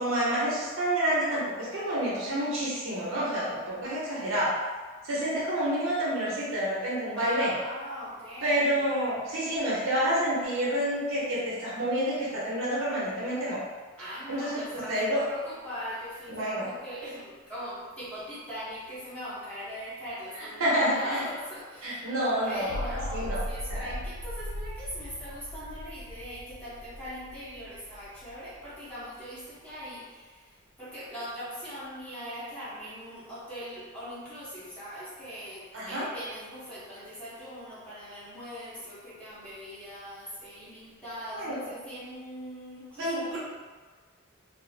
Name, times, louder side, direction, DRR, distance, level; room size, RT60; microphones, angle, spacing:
voice 1, 0.0-4.5 5.0-7.5 8.4-13.6 14.3-15.2 16.3-16.7 20.4-21.2 21.8-23.4 23.7-23.9 35.7-36.1 41.3-41.7 43.0-43.4, right 1 dB, 70° right, -7 dB, 0.8 m, -28 dB
voice 2, 7.1-8.8 14.0-43.4, equal, 5° left, -11 dB, 0.8 m, -41 dB
sound 1, 22.6-29.0, equal, 85° left, 0.3 m, -38 dB
2.4 x 2.0 x 2.6 m, 1.4 s
head